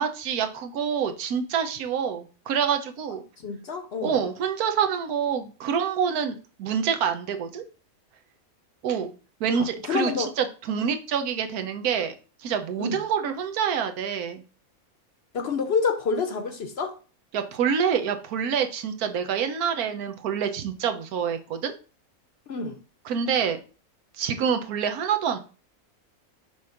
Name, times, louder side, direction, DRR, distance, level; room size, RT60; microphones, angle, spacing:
voice 1, 0.0-3.2 4.0-7.6 8.8-9.1 9.4-12.1 12.4-14.4 17.3-21.7 23.1-23.6 24.2-25.4, right 7 dB, 85° right, 1.3 m, -26 dB
voice 2, 3.4-4.2 9.6-10.3 12.8-13.0 15.3-17.0 22.5-22.8, left 5 dB, 55° left, 0.8 m, -28 dB
5.9 x 3.2 x 5.7 m
omnidirectional pair, 1.5 m